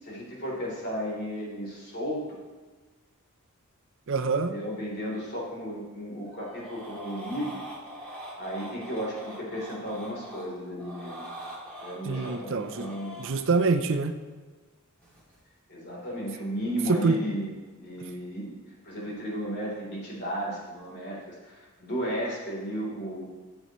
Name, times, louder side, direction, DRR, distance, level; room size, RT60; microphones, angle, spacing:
voice 1, 0.0-2.2 4.5-7.6 8.4-11.2 11.8-13.2 15.7-17.5 17.7-18.5 18.8-23.2, equal, 50° left, -4 dB, 3.3 m, -34 dB
voice 2, 4.1-4.6 12.0-12.9 13.2-14.2 16.9-17.2, right 4 dB, 60° right, 8 dB, 0.6 m, -25 dB
sound 1, 6.3-10.5 10.8-13.3 15.0-15.4, equal, 5° left, 2.7 m, -42 dB
14.0 x 7.9 x 3.1 m, 1.3 s
head